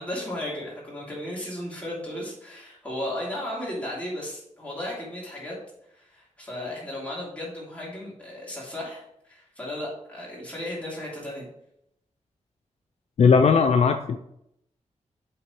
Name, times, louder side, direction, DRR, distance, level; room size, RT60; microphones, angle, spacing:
voice 1, 0.0-5.6 5.9-9.0 9.3-11.5, left 1 dB, 10° left, -6 dB, 2.8 m, -35 dB
voice 2, 13.2-14.2, left 5 dB, 60° left, 7 dB, 0.4 m, -18 dB
7.8 x 3.9 x 4.4 m, 0.77 s
wide cardioid pair, 155°, 12 cm